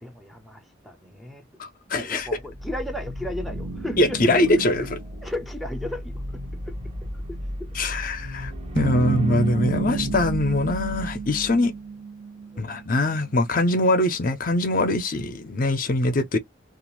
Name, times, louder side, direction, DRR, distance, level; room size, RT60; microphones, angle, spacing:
voice 1, 0.0-1.5 1.9-4.4 4.8-4.9 5.2-6.8 7.3-7.7 12.5-12.7 16.1-16.2, left 1 dB, ahead, 0.6 m, -35 dB
voice 2, 1.6-2.3 4.0-4.9 7.8-11.7 12.6-16.4, left 2 dB, 45° left, 0.5 m, -23 dB
sound 1, 2.2-11.6, equal, 30° right, 0.9 m, -34 dB
sound 2, 8.8-13.1, right 6 dB, 75° right, 0.4 m, -30 dB
2.5 x 2.4 x 2.9 m
head